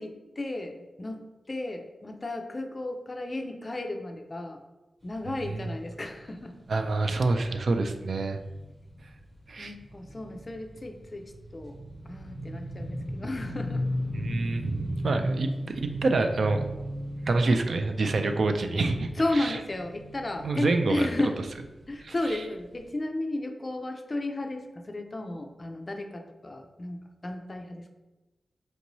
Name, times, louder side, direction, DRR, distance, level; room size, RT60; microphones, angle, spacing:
voice 1, 0.0-4.6 5.0-6.6 9.6-11.2 11.5-11.8 12.0-13.9 15.2-15.3 19.1-21.4 21.9-27.8, left 2 dB, 30° left, 6 dB, 0.3 m, -33 dB
sound 1, 5.0-22.3 22.7-22.8, equal, 20° right, 1.0 m, -38 dB
voice 2, 5.2-5.7 6.7-8.4 9.5-9.7 14.1-15.5 15.8-16.6 17.3-19.6 20.4-21.1 22.0-22.1, right 3 dB, 65° right, 6 dB, 0.3 m, -27 dB
4.4 x 2.7 x 2.9 m, 1.1 s
wide cardioid pair, 110°, 0 cm